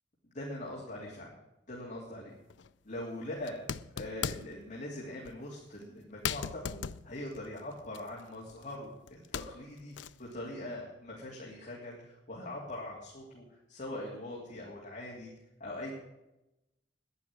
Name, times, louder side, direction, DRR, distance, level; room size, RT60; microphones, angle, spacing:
voice 1, 0.2-1.3 1.7-2.4 2.8-3.6 3.9-15.3 15.6-15.9, left 1 dB, 45° left, -4 dB, 3.1 m, -42 dB
sound 1, 2.5-2.7 3.4-4.6 5.2-5.4 5.8-5.9 6.2-8.8 9.1-10.3, left 7 dB, 85° left, 0.5 m, -39 dB
11.0 x 10.5 x 9.0 m, 0.92 s
head